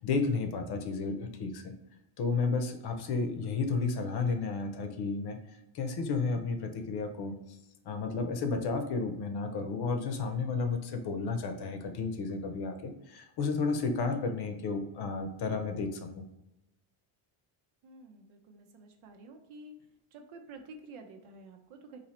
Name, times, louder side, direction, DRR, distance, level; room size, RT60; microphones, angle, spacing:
voice 1, 0.0-1.7 2.2-5.4 5.7-7.6 7.8-16.2, left 4 dB, 50° left, 6 dB, 0.7 m, -32 dB
voice 2, 17.8-19.8 20.1-22.0, right 2 dB, 80° right, 4 dB, 0.9 m, -50 dB
4.1 x 2.7 x 4.2 m, 0.90 s
cardioid pair, 170°, 49 cm